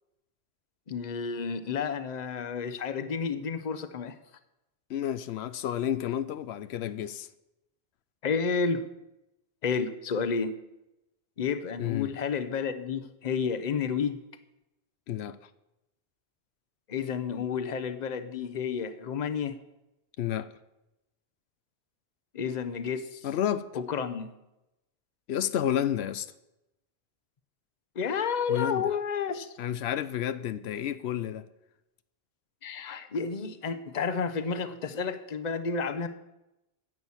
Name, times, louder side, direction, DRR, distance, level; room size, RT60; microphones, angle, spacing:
voice 1, 0.9-4.2 8.2-8.8 9.6-10.5 11.4-14.2 16.9-19.6 22.3-23.3 23.7-24.3 28.0-29.5 32.6-36.1, left 6 dB, 45° left, 0.8 m, -31 dB
voice 2, 4.9-7.3 11.8-12.1 15.1-15.4 20.2-20.5 23.2-23.7 25.3-26.3 28.5-28.8 29.6-31.5, left 10 dB, 90° left, 0.9 m, -30 dB
11.0 x 8.0 x 7.2 m
omnidirectional pair, 1.1 m